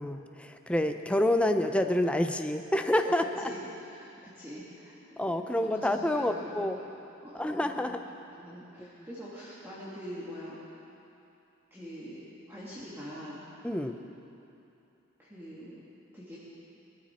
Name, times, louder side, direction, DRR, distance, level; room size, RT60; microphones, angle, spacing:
voice 1, 0.0-3.5 5.2-6.8 7.3-8.0 8.8-8.9 13.6-14.0, left 1 dB, 5° left, 6 dB, 0.5 m, -28 dB
voice 2, 3.0-3.6 3.9-5.0 5.5-6.6 7.2-8.0 8.3-10.6 11.7-13.4 15.2-15.8 16.1-16.4, equal, 10° right, -9 dB, 1.9 m, -44 dB
19.5 x 13.5 x 4.3 m, 2.8 s
head